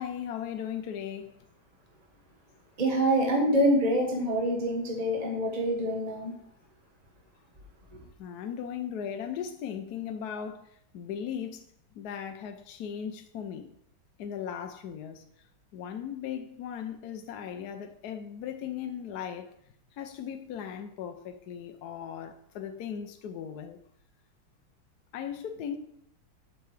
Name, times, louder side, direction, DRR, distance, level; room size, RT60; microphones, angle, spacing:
voice 1, 0.0-1.4 8.2-10.7 10.9-11.6 12.0-13.7 14.2-15.2 15.7-19.5 20.0-23.8 25.1-25.8, left 8 dB, 70° left, 1.0 m, -37 dB
voice 2, 2.8-6.3, equal, 25° right, 1.0 m, -26 dB
8.2 x 6.8 x 3.2 m
omnidirectional pair, 2.2 m